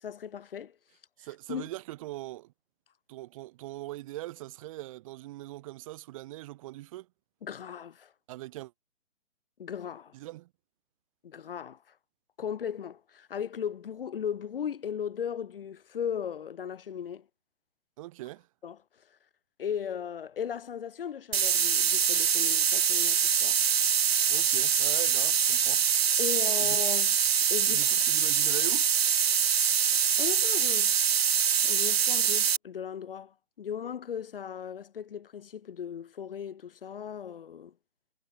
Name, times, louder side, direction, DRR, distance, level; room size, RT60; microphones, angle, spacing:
voice 1, 0.0-0.8 1.5-1.7 7.4-8.1 9.6-10.1 11.2-11.8 12.4-17.3 18.6-18.8 19.6-23.6 26.2-27.2 27.5-27.9 30.2-31.1 31.6-37.7, left 8 dB, 45° left, 2.2 m, -37 dB
voice 2, 1.2-2.5 3.1-7.1 8.3-8.7 10.1-10.5 18.0-18.5 24.3-25.9 26.6-26.8 27.7-28.9, right 17 dB, 25° right, 2.9 m, -41 dB
sound 1, 21.3-32.6, right 8 dB, 50° right, 0.6 m, -24 dB
figure-of-eight pair, 145°, 39 cm